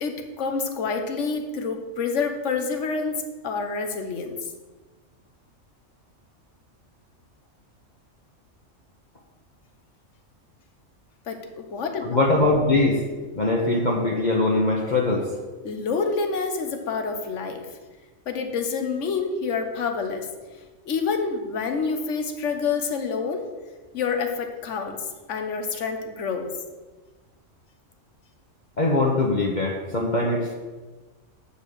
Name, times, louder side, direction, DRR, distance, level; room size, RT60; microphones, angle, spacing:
voice 1, 0.0-4.4 11.3-12.2 15.6-17.7 18.3-20.3 20.8-23.5 23.9-26.5, left 5 dB, 70° left, 5 dB, 1.3 m, -28 dB
voice 2, 12.0-13.0 13.4-15.3 28.8-30.5, left 2 dB, 40° left, -2 dB, 1.1 m, -22 dB
8.2 x 5.4 x 6.6 m, 1.3 s
omnidirectional pair, 1.3 m